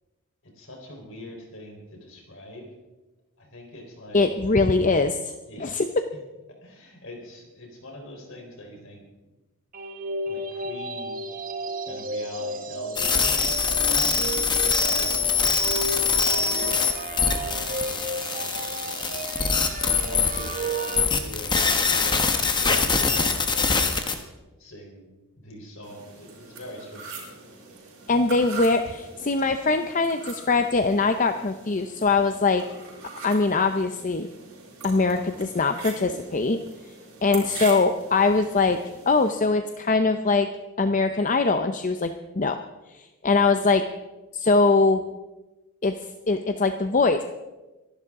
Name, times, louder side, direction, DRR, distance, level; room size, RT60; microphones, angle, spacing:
voice 1, 0.4-2.7 3.4-4.3 5.4-5.9 6.5-9.0 10.3-11.1 11.9-15.6 15.9-17.0 17.2-19.2 19.8-24.0 24.6-25.1 25.4-27.2, left 1 dB, 60° left, 1 dB, 4.0 m, -41 dB
voice 2, 4.1-5.8 28.1-32.6 33.2-34.3 34.8-36.6 37.2-38.8 39.1-40.5 40.8-42.6 42.9-43.8 44.3-45.0 45.8-45.9 46.3-47.2, left 3 dB, 35° left, 8 dB, 0.6 m, -22 dB
sound 1, 9.7-21.0, right 2 dB, 40° right, 1.1 m, -33 dB
sound 2, 13.0-24.2, left 5 dB, 20° left, 1.1 m, -24 dB
sound 3, 25.8-39.3, right 4 dB, 65° right, 5.7 m, -42 dB
25.5 x 11.5 x 3.7 m, 1.1 s
head